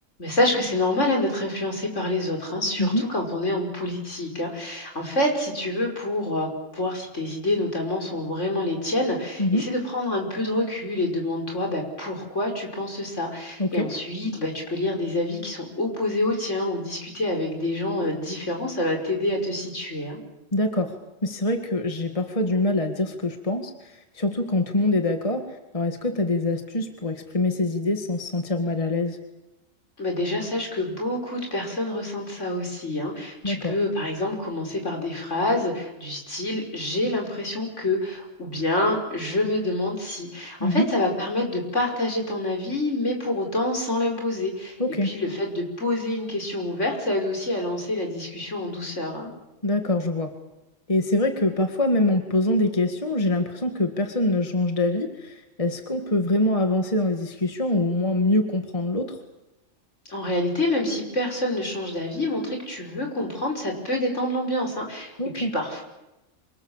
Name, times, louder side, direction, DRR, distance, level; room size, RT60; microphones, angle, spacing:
voice 1, 0.2-20.2 30.0-49.3 60.1-65.8, left 1 dB, 70° left, 2 dB, 6.1 m, -27 dB
voice 2, 20.5-20.9 21.2-25.5 25.7-29.2 33.4-33.7 40.6-40.9 44.8-45.2 49.6-50.3 50.9-59.2 65.2-65.5, left 2 dB, 25° left, 5 dB, 2.0 m, -24 dB
27.5 x 25.0 x 7.4 m, 0.98 s
omnidirectional pair, 1.3 m